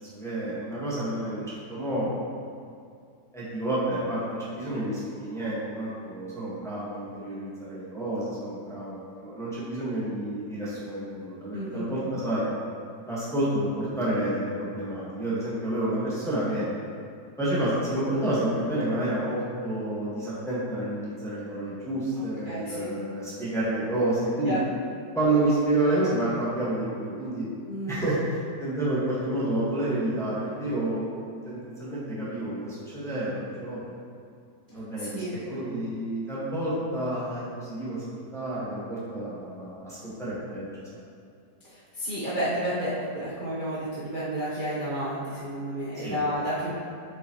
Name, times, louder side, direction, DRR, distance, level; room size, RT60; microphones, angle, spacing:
voice 1, 0.1-2.2 3.3-12.4 13.1-16.7 17.4-24.6 25.1-27.4 27.9-33.8 34.7-38.0 38.3-40.7 40.9-41.0 46.0-46.2, right 1 dB, ahead, -9 dB, 1.3 m, -29 dB
voice 2, 11.5-11.9 22.5-22.9 24.5-24.6 27.7-28.0 35.0-35.4 41.7-46.7, equal, 35° right, -12 dB, 1.1 m, -31 dB
7.3 x 5.4 x 3.0 m, 2.3 s
omnidirectional pair, 1.8 m